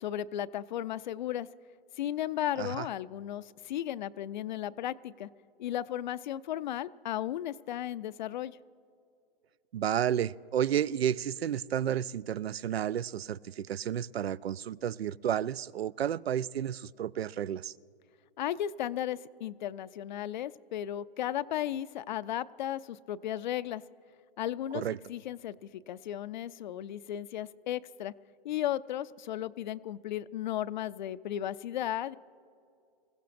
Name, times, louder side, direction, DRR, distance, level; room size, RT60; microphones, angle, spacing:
voice 1, 0.0-1.5 2.0-5.3 5.6-8.6 18.4-23.8 24.4-24.8 25.1-28.1 28.4-32.2, left 11 dB, 50° left, 0.5 m, -35 dB
voice 2, 9.7-17.7 24.7-25.0, right 10 dB, 90° right, 0.5 m, -31 dB
27.0 x 16.0 x 2.6 m
hypercardioid pair, 140°, 30 cm